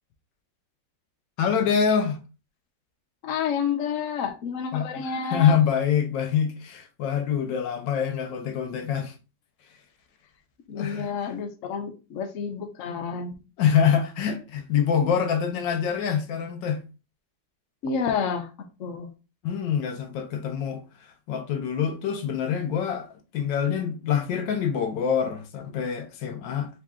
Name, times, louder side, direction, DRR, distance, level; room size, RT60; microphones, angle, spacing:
voice 1, 1.4-2.2 4.7-9.1 10.8-11.1 13.6-16.8 19.4-20.8 21.3-23.1 23.3-26.7, left 7 dB, 80° left, 1.4 m, -25 dB
voice 2, 3.2-5.6 10.7-13.3 17.8-18.5 18.8-19.1, left 6 dB, 60° left, 0.9 m, -29 dB
3.9 x 2.9 x 3.7 m
omnidirectional pair, 2.0 m